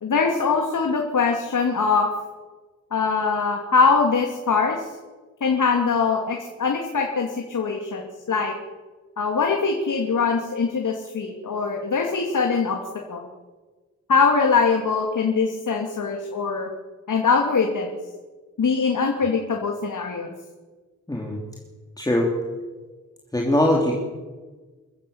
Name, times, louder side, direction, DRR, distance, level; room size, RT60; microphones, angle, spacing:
voice 1, 0.0-2.1 2.9-4.9 5.4-8.0 8.3-8.5 9.2-12.8 13.1-13.3 14.1-16.7 17.1-17.9 18.6-20.3, left 5 dB, 85° left, 1 dB, 3.0 m, -22 dB
voice 2, 21.1-21.4 22.0-22.3 23.3-24.1, left 1 dB, 10° left, -1 dB, 3.2 m, -21 dB
26.0 x 15.0 x 8.9 m, 1.3 s
wide cardioid pair, 170°, 30 cm